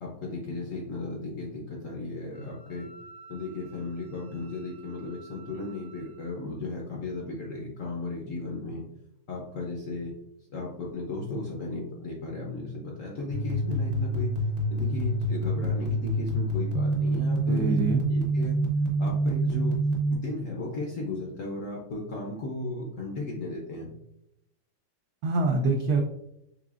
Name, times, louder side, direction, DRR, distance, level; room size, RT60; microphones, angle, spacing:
voice 1, 0.0-2.9 3.3-8.8 9.3-10.1 10.5-14.3 14.7-18.6 19.0-19.8 20.1-23.9, left 2 dB, 65° left, -2 dB, 0.8 m, -35 dB
Wind instrument woodwind instrument, 2.3-6.3, right 4 dB, 35° left, 0.4 m, -53 dB
sound 1, 13.3-20.2, right 1 dB, 55° right, 1.2 m, -27 dB
voice 2, 17.5-18.0 25.2-26.0, right 3 dB, 90° right, 3 dB, 0.8 m, -25 dB
4.9 x 3.3 x 2.4 m, 0.80 s
omnidirectional pair, 2.2 m